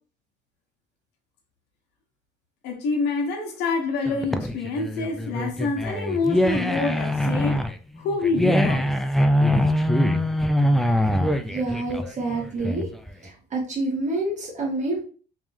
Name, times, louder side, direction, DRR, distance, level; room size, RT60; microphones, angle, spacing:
voice 1, 2.6-7.6 8.0-8.9, left 4 dB, 80° left, 1.0 m, -27 dB
sound 1, 4.1-13.1, equal, ahead, 0.3 m, -23 dB
voice 2, 11.5-12.9 13.2-15.0, right 2 dB, 45° right, 1.7 m, -27 dB
3.5 x 3.1 x 3.2 m
cardioid pair, 110°, 17 cm